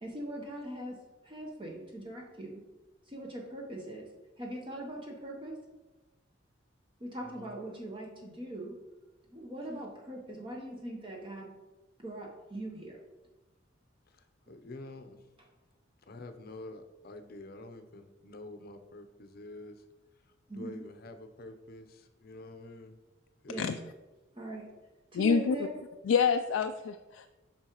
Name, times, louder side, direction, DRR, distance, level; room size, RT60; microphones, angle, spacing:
voice 1, 0.0-2.6 3.1-4.1 4.4-5.6 7.0-8.8 9.3-11.5 12.0-13.0 20.5-20.8 23.5-23.7 24.3-24.7 25.1-25.7, right 1 dB, 25° right, -1 dB, 0.8 m, -41 dB
voice 2, 7.2-7.5 14.1-15.2 16.1-19.8 20.5-23.0 23.4-23.7, left 2 dB, 50° left, 7 dB, 0.6 m, -47 dB
voice 3, 25.1-25.6 26.0-27.3, left 6 dB, 90° left, 6 dB, 0.3 m, -27 dB
8.6 x 5.6 x 3.0 m, 1.1 s
head